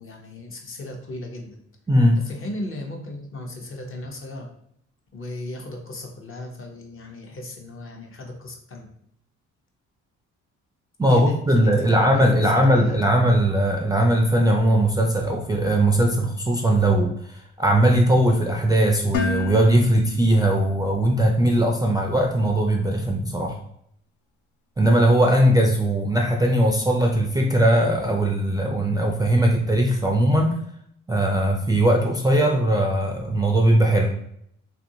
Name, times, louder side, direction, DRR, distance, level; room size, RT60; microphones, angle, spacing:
voice 1, 0.0-1.6 2.2-4.5 5.1-8.9 11.1-13.0, left 1 dB, 45° left, 1 dB, 0.7 m, -36 dB
voice 2, 11.0-17.1 17.6-23.6 24.8-30.6 31.1-34.1, right 1 dB, 15° right, 1 dB, 0.3 m, -19 dB
Dishes pots and pans, 19.1-21.2, left 3 dB, 80° left, 0.5 m, -31 dB
2.8 x 2.6 x 2.7 m, 0.70 s
cardioid pair, 90°, 30 cm